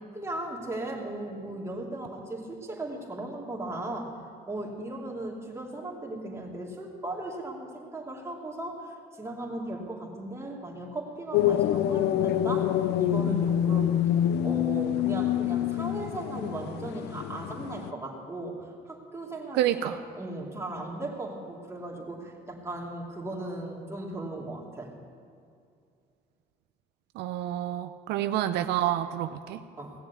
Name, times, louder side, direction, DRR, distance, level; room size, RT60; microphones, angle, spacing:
voice 1, 0.1-12.7 13.0-14.0 14.4-24.9 29.8-29.9, right 1 dB, 15° right, -2 dB, 2.7 m, -37 dB
sound 1, 11.3-17.9, left 11 dB, 80° left, 0.5 m, -26 dB
voice 2, 19.5-20.0 27.2-29.6, right 12 dB, 80° right, 9 dB, 0.6 m, -28 dB
17.5 x 7.1 x 8.3 m, 2.4 s
cardioid pair, 110°, 17 cm